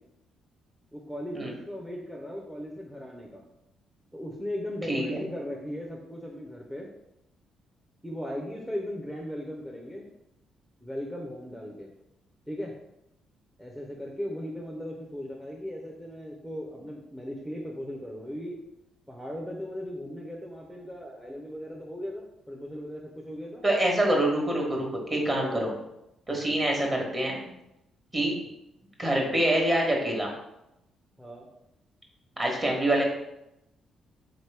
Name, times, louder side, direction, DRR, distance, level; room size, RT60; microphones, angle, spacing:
voice 1, 0.9-3.4 4.1-6.9 8.0-10.1 10.8-11.9 12.5-12.7 13.6-18.6 19.1-23.6 25.1-25.5 26.3-26.5 29.1-29.3 31.2-31.4, equal, 5° right, -2 dB, 0.6 m, -37 dB
voice 2, 4.9-5.2 23.6-25.7 26.3-27.5 28.1-28.3 29.0-30.3 32.4-33.0, right 1 dB, 25° right, 0 dB, 1.2 m, -26 dB
4.1 x 3.0 x 3.3 m, 0.86 s
cardioid pair, 90°, 0 cm